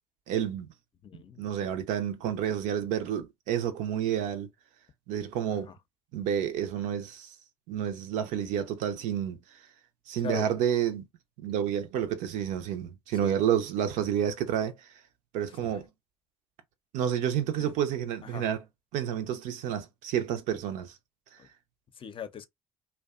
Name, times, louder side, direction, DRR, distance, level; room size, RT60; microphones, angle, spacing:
voice 1, 0.3-0.7 1.4-4.5 5.1-5.7 6.1-7.3 7.7-9.4 10.1-11.0 11.4-14.9 15.3-15.9 16.9-18.6 18.9-20.9, right 9 dB, 70° right, 0.5 m, -30 dB
voice 2, 1.0-1.4 5.7-5.8 10.2-10.5 13.2-13.3 17.6-17.7 18.2-18.4 21.4-21.5 22.0-22.5, left 8 dB, 40° left, 0.5 m, -39 dB
2.6 x 2.1 x 2.3 m
hypercardioid pair, 55°, 13 cm